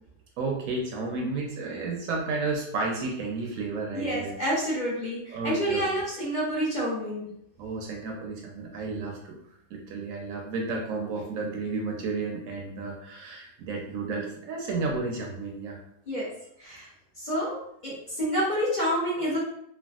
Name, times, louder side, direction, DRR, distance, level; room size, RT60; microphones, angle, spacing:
voice 1, 0.4-4.3 5.3-5.8 7.6-9.4 9.7-15.8, right 3 dB, 70° right, 1 dB, 0.9 m, -32 dB
voice 2, 3.9-7.3 16.1-16.3 16.6-16.9 17.2-19.4, equal, 35° left, -8 dB, 0.9 m, -28 dB
3.3 x 2.3 x 2.3 m, 0.72 s
omnidirectional pair, 1.6 m